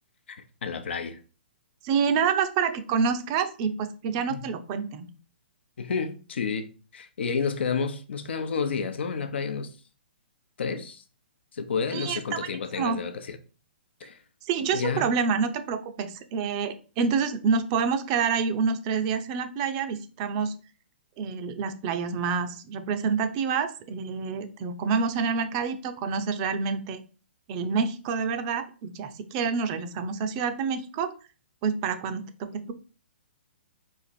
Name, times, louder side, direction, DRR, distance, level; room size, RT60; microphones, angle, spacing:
voice 1, 0.6-1.2 4.3-4.4 5.8-6.7 6.9-9.7 10.6-11.0 11.5-13.4 14.0-14.2 14.7-15.1, left 5 dB, 75° left, 0.7 m, -30 dB
voice 2, 1.8-5.1 11.9-12.5 12.7-13.0 14.5-20.5 21.2-27.0 27.5-31.1 31.6-32.7, right 6 dB, 35° right, 0.5 m, -27 dB
4.3 x 2.5 x 4.2 m
hypercardioid pair, 140°, 6 cm